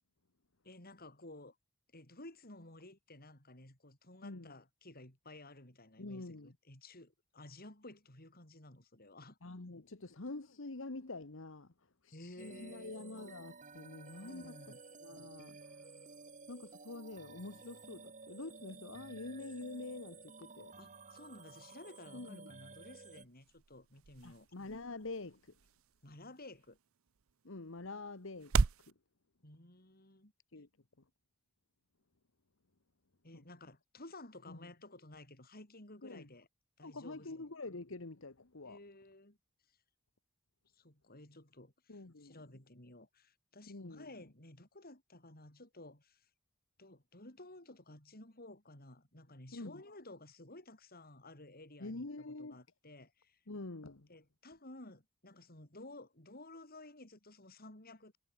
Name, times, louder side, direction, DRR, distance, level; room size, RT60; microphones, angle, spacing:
voice 1, 0.6-1.6 1.9-9.4 12.1-12.9 14.2-14.8 20.8-24.5 26.0-26.8 29.4-30.3 33.2-36.5 36.8-37.5 38.7-39.4 40.7-46.3 46.8-53.4 54.1-58.2, left 2 dB, 45° left, 6.9 m, -54 dB
voice 2, 4.2-4.6 6.0-6.5 9.4-14.7 15.0-15.9 16.5-20.8 22.1-22.5 24.2-25.6 27.4-28.9 30.5-30.7 33.3-33.4 34.5-34.7 36.0-36.3 36.8-38.8 41.9-42.4 43.7-44.1 49.5-49.8 51.8-52.6 53.5-54.1, left 2 dB, 65° left, 1.4 m, -46 dB
sound 1, 12.4-23.3, right 4 dB, 35° right, 5.2 m, -54 dB
sound 2, 22.6-28.9, right 4 dB, 75° right, 0.7 m, -39 dB
head